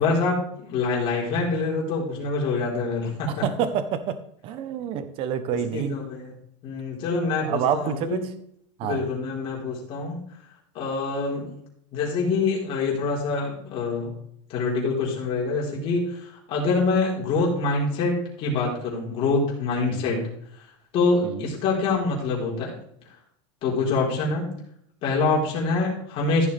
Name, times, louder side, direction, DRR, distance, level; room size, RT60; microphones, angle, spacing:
voice 1, 0.0-3.4 5.7-6.3 6.6-8.2 8.8-10.2 10.7-11.5 11.9-14.1 14.5-20.2 20.9-22.8 23.6-24.5 25.0-26.5, left 3 dB, 35° left, -3 dB, 4.1 m, -25 dB
voice 2, 3.4-6.0 7.5-8.3 8.8-9.0 19.9-20.2 21.2-21.5, right 8 dB, 35° right, 11 dB, 1.0 m, -28 dB
14.5 x 7.0 x 3.5 m, 0.70 s
supercardioid pair, 160°, 16 cm